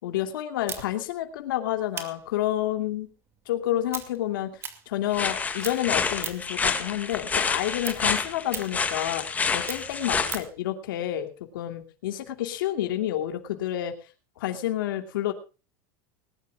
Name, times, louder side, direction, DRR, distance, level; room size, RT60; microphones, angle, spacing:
voice 1, 0.0-3.1 3.5-11.3 11.5-14.1 14.4-15.3, left 13 dB, 90° left, 6 dB, 2.7 m, -29 dB
sound 1, 0.7-5.3 5.6-6.6 7.0-10.6, right 7 dB, 20° right, 2.4 m, -39 dB
sound 2, 5.1-10.4, left 5 dB, 15° left, 2.0 m, -28 dB
20.0 x 20.0 x 2.4 m, 0.33 s
supercardioid pair, 160°, 11 cm